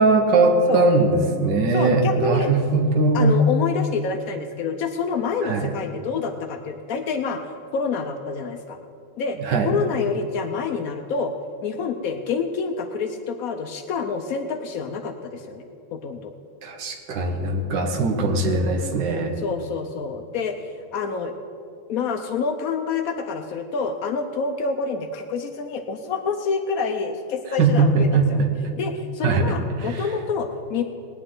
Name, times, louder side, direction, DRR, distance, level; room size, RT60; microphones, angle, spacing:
voice 1, 0.0-3.4 5.4-5.7 9.5-9.7 16.6-19.3 27.6-28.5 29.2-29.5 29.8-29.9, right 3 dB, 55° right, 2 dB, 1.8 m, -20 dB
voice 2, 1.7-2.5 3.1-7.4 7.7-8.8 9.2-11.3 11.6-15.6 15.9-16.3 19.4-21.3 21.9-28.4 28.8-30.8, left 5 dB, 80° left, 5 dB, 0.7 m, -27 dB
19.5 x 9.9 x 3.9 m, 2.7 s
omnidirectional pair, 2.4 m